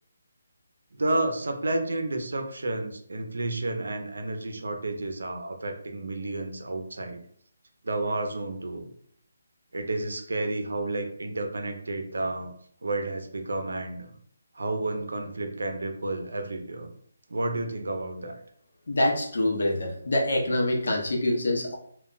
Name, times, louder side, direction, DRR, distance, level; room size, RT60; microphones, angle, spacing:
voice 1, 0.9-7.2 7.8-8.9 9.7-12.5 12.8-14.2 14.5-16.9 17.3-18.4, right 2 dB, 90° right, 5 dB, 0.5 m, -31 dB
voice 2, 18.9-21.7, left 1 dB, 70° left, 0 dB, 0.7 m, -25 dB
2.3 x 2.1 x 3.7 m, 0.62 s
hypercardioid pair, 175°, 0 cm